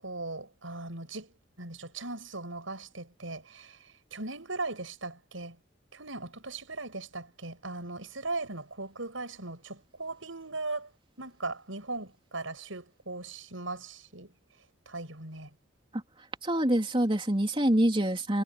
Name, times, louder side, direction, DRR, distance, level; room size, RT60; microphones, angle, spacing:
voice 1, 0.0-5.6 5.9-14.3 14.9-15.5, right 3 dB, 85° right, 7.2 m, -39 dB
voice 2, 16.4-18.4, right 1 dB, 25° right, 3.3 m, -25 dB
head